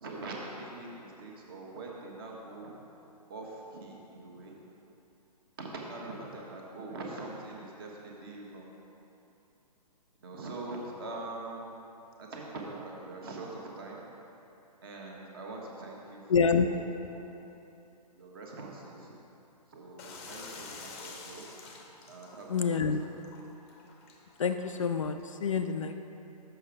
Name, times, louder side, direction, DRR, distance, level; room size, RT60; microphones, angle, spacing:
voice 1, 0.0-2.8 3.3-4.5 5.6-8.7 10.2-11.8 12.2-14.0 14.8-16.8 17.1-17.3 18.1-19.1 19.7-21.5 22.1-23.2, right 2 dB, 35° right, -1 dB, 1.2 m, -43 dB
voice 2, 16.3-16.7 22.5-23.0 24.4-26.0, left 5 dB, 50° left, 7 dB, 0.4 m, -27 dB
sound 1, 20.0-25.4, left 4 dB, 20° left, 0.7 m, -49 dB
7.0 x 6.0 x 4.9 m, 2.9 s
figure-of-eight pair, 130°, 21 cm